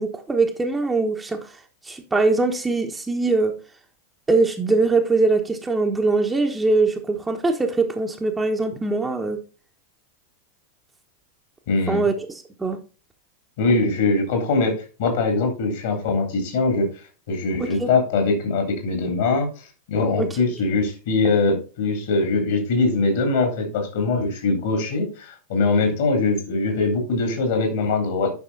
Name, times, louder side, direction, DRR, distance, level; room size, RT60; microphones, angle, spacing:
voice 1, 0.0-1.4 1.8-3.5 4.3-9.4 11.9-12.8 17.6-17.9 20.2-20.3, right 3 dB, 10° right, 3 dB, 1.2 m, -22 dB
voice 2, 11.7-12.1 13.6-16.9 17.3-19.5 19.9-28.3, left 3 dB, 55° left, 4 dB, 3.3 m, -22 dB
9.5 x 6.0 x 4.1 m, 0.34 s
figure-of-eight pair, 90°, 0 cm